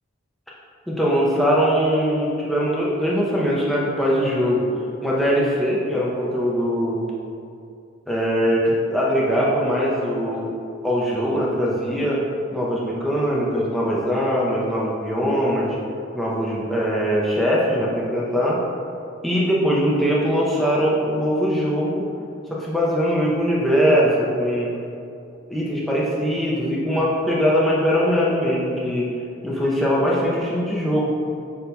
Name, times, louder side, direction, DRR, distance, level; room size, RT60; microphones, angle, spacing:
voice 1, 0.9-4.6 5.0-7.0 8.1-10.5 10.8-12.2 12.5-15.8 16.1-18.6 19.2-22.0 22.5-24.7 25.5-29.1 29.4-31.1, equal, ahead, -6 dB, 0.5 m, -21 dB
6.3 x 2.7 x 2.2 m, 2.5 s
head